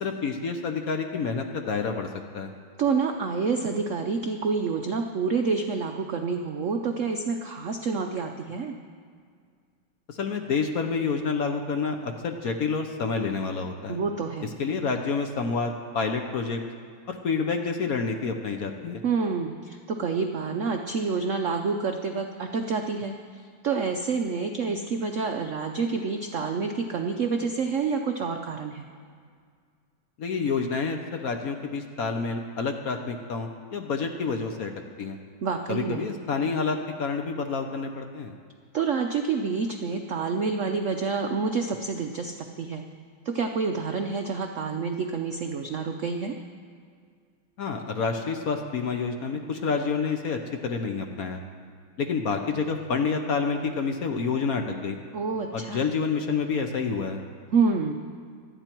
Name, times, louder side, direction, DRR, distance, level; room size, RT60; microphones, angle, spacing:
voice 1, 0.0-2.1 2.3-2.5 10.1-14.0 14.6-16.6 17.1-19.0 30.2-34.7 35.0-35.2 35.7-38.3 47.6-51.4 52.0-55.0 55.5-57.2, left 5 dB, 55° left, 5 dB, 1.1 m, -28 dB
voice 2, 2.8-8.8 13.9-14.5 19.0-28.9 35.4-36.1 38.7-42.8 43.2-46.3 55.1-55.9 57.5-57.9, right 5 dB, 70° right, 5 dB, 0.7 m, -28 dB
24.0 x 9.1 x 4.5 m, 2.1 s
omnidirectional pair, 2.2 m